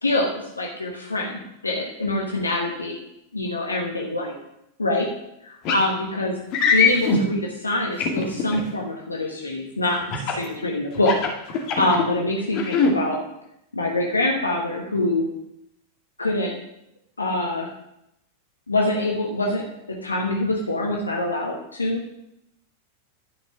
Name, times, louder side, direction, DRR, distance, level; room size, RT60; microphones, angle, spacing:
voice 1, 0.0-3.0 3.3-4.4 4.8-5.1 5.4-6.4 6.7-13.2 13.7-15.3 16.2-16.5 17.2-17.7 18.7-22.0, left 2 dB, 80° left, 0 dB, 1.3 m, -25 dB
sound 1, 5.7-5.9 6.5-7.2 8.0-8.6 10.1-10.4 10.9-12.0 12.5-12.9, left 5 dB, 40° left, 2.2 m, -21 dB
11.0 x 5.9 x 6.0 m, 0.82 s
figure-of-eight pair, 90°, 0 cm